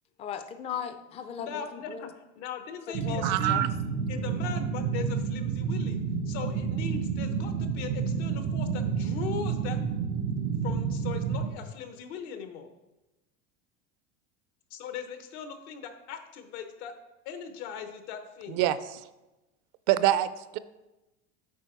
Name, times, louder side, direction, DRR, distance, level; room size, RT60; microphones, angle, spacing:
voice 1, 0.2-2.1 3.0-3.6, left 7 dB, 20° left, 9 dB, 0.4 m, -37 dB
voice 2, 1.4-3.7 4.1-9.8 10.6-12.7 14.7-16.9 17.2-18.6, left 7 dB, 75° left, 8 dB, 1.1 m, -39 dB
sound 1, 2.9-11.5, right 6 dB, 85° right, 1.3 m, -30 dB
voice 3, 3.2-3.7 18.5-19.0 19.9-20.6, right 13 dB, 60° right, 15 dB, 0.5 m, -25 dB
8.3 x 4.9 x 4.5 m, 1.0 s
supercardioid pair, 130°, 34 cm